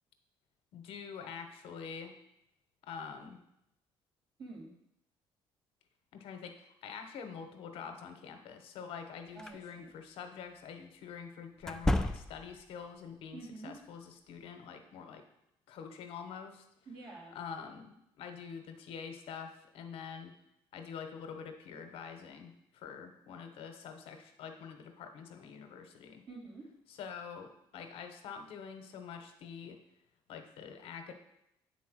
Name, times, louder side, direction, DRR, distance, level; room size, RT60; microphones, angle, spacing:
voice 1, 0.7-2.1 2.8-3.4 6.1-15.2 15.7-16.6 17.3-20.3 20.7-26.2 26.9-29.8 30.3-31.1, left 6 dB, 70° left, 6 dB, 1.0 m, -46 dB
voice 2, 4.4-4.7 9.3-9.9 13.3-13.8 16.9-17.4 26.3-26.7, right 3 dB, 50° right, -3 dB, 2.6 m, -48 dB
sound 1, 9.4-9.6 11.6-12.6, left 1 dB, 5° left, 0.3 m, -32 dB
8.3 x 4.2 x 6.2 m, 0.82 s
cardioid pair, 130°, 10 cm